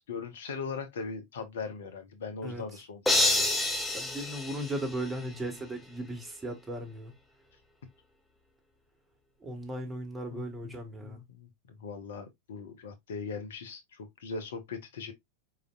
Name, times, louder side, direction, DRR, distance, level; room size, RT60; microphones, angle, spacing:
voice 1, 0.1-3.5 5.2-5.5 6.0-6.2 10.3-10.7 11.0-15.1, left 5 dB, 60° left, 1.0 m, -40 dB
sound 1, 3.1-5.4, left 2 dB, 10° left, 1.1 m, -28 dB
voice 2, 3.9-7.1 9.4-11.2, right 1 dB, 15° right, 1.7 m, -37 dB
5.0 x 4.3 x 2.5 m
figure-of-eight pair, 90°, 0 cm